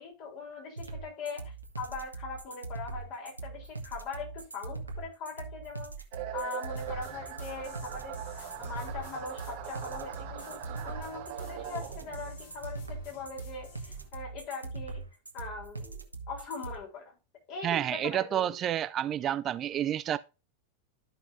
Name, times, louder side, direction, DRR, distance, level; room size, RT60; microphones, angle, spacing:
voice 1, 0.0-5.9 6.3-15.0 15.3-17.2 17.5-18.5, left 4 dB, 40° left, 3.5 m, -41 dB
sound 1, 0.8-16.8, right 3 dB, 80° right, 1.1 m, -41 dB
sound 2, 6.1-12.3, right 13 dB, 45° right, 0.9 m, -42 dB
sound 3, 6.7-14.1, left 3 dB, 60° left, 2.3 m, -51 dB
voice 2, 17.6-20.2, right 11 dB, 30° right, 0.3 m, -29 dB
13.5 x 5.4 x 2.6 m
figure-of-eight pair, 90°, 0 cm